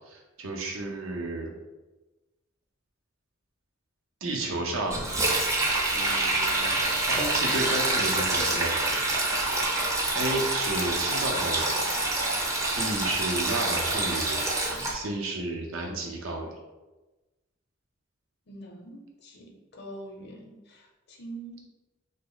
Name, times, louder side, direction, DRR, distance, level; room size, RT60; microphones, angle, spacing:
voice 1, 0.1-1.6 4.2-5.0 5.9-6.8 7.1-9.0 10.1-11.7 12.8-14.5 14.9-16.6, right 2 dB, 85° right, 0 dB, 0.6 m, -32 dB
Sink (filling or washing), 4.9-14.9, right 2 dB, 15° right, 0.4 m, -26 dB
voice 2, 18.5-20.8 21.1-21.7, right 2 dB, 50° left, 0 dB, 0.5 m, -44 dB
2.9 x 2.0 x 3.8 m, 1.1 s
head